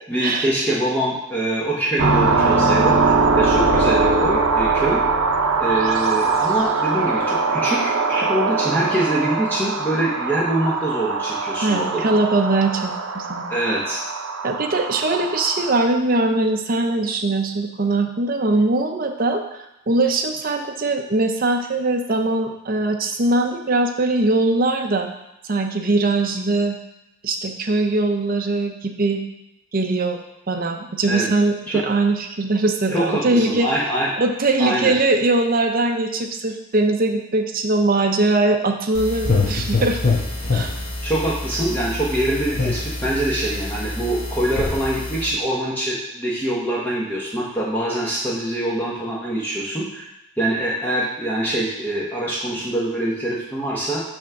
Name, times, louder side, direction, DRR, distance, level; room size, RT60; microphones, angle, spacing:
voice 1, 0.1-5.0 5.6-12.2 13.5-14.0 31.1-31.2 31.7-31.8 32.9-34.2 34.6-34.9 41.0-50.1 50.4-54.0, right 1 dB, 10° left, -6 dB, 0.9 m, -24 dB
sound 1, 2.0-15.8, right 4 dB, 80° right, 0.7 m, -21 dB
voice 2, 11.6-13.6 14.4-25.1 25.4-26.8 27.2-29.2 29.7-33.7 34.2-40.0 40.5-40.7, right 2 dB, 45° right, 5 dB, 0.6 m, -21 dB
sound 2, 38.9-45.3, left 3 dB, 45° left, 1.1 m, -25 dB
6.0 x 3.6 x 5.9 m, 0.86 s
head